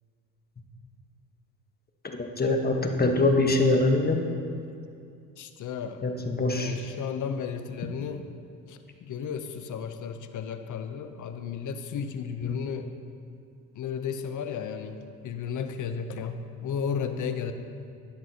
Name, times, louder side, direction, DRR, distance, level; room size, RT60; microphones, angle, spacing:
voice 1, 2.2-4.2 6.0-6.7 12.4-12.6, left 2 dB, 25° left, 3 dB, 1.2 m, -24 dB
voice 2, 5.4-6.0 6.5-8.3 8.7-12.9 13.7-17.5, left 7 dB, 55° left, 9 dB, 0.8 m, -34 dB
12.0 x 10.0 x 2.9 m, 2.4 s
supercardioid pair, 75°, 37 cm